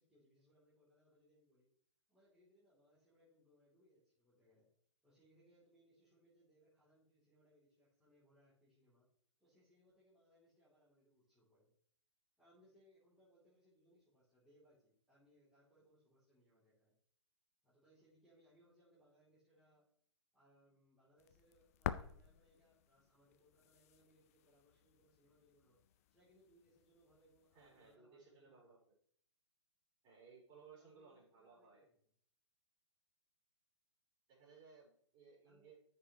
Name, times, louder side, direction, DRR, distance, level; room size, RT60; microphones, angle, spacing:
voice 1, 0.0-1.7 2.1-4.7 5.0-9.1 9.4-11.7 12.4-16.9 17.6-19.9 20.3-25.8 26.1-28.7 30.8-32.1 35.4-35.7, equal, 5° right, -11 dB, 3.2 m, -72 dB
sound 1, 21.2-28.0, left 11 dB, 30° left, 0.4 m, -50 dB
voice 2, 27.5-28.8 30.0-31.9 34.3-35.7, right 5 dB, 25° right, -5 dB, 4.6 m, -62 dB
13.5 x 6.3 x 3.1 m, 0.63 s
figure-of-eight pair, 120°, 15 cm